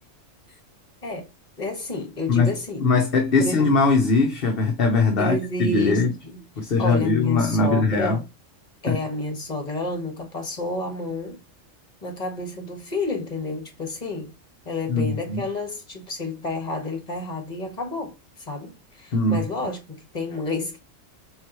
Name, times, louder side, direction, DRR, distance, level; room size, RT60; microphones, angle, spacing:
voice 1, 1.6-2.8 3.4-3.7 5.2-6.4 6.8-8.2 8.8-11.4 12.0-14.3 14.6-20.8, left 2 dB, 30° left, 1.6 m, -30 dB
voice 2, 2.8-6.1 6.6-8.2 8.9-9.0 14.9-15.4 19.1-19.4, left 3 dB, 50° left, 0.9 m, -21 dB
4.8 x 3.7 x 3.0 m
omnidirectional pair, 1.3 m